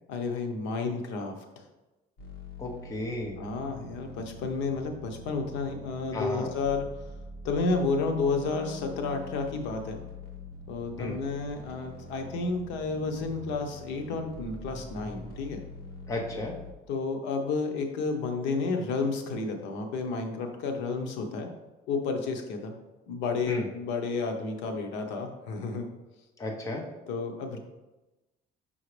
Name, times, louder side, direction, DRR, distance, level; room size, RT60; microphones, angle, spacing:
voice 1, 0.1-1.6 3.4-6.9 7.4-10.0 10.7-15.6 16.9-21.5 21.9-22.7 23.1-25.9 27.1-27.6, left 4 dB, 80° left, 4 dB, 1.0 m, -31 dB
sound 1, 2.2-16.7, left 2 dB, 65° left, 1.4 m, -44 dB
voice 2, 2.6-3.4 6.1-6.5 11.0-11.2 16.1-16.5 23.5-23.7 26.4-26.8, left 2 dB, 15° left, 0 dB, 0.8 m, -33 dB
5.9 x 5.6 x 3.3 m, 1.0 s
cardioid pair, 175°, 18 cm